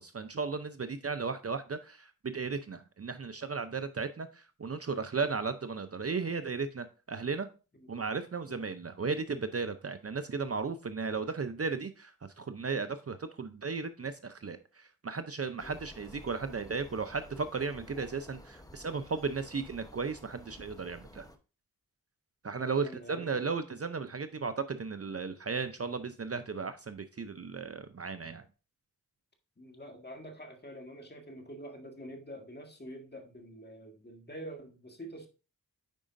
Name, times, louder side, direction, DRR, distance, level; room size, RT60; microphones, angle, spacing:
voice 1, 0.0-7.5 7.9-21.3 22.4-28.4, right 4 dB, 40° right, 10 dB, 0.6 m, -35 dB
sound 1, 15.6-21.4, left 1 dB, 10° left, 0.9 m, -52 dB
voice 2, 22.6-23.4 29.6-35.3, equal, 25° left, 3 dB, 1.8 m, -46 dB
9.1 x 4.9 x 2.6 m, 0.33 s
cardioid pair, 50°, 36 cm